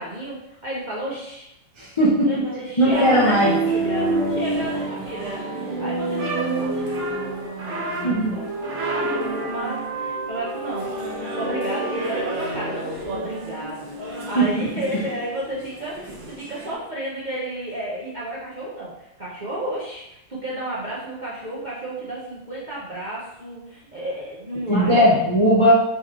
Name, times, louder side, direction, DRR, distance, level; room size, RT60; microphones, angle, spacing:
voice 1, 0.0-1.5 2.2-7.0 7.3-25.2, right 1 dB, 40° right, -7 dB, 0.6 m, -32 dB
voice 2, 1.8-2.3 2.8-3.5 8.0-8.4 14.3-14.5 24.7-25.7, equal, 50° left, -7 dB, 0.3 m, -17 dB
sound 1, 2.9-16.7, right 2 dB, 60° right, 1.7 m, -28 dB
4.2 x 3.2 x 3.6 m, 0.83 s
omnidirectional pair, 2.0 m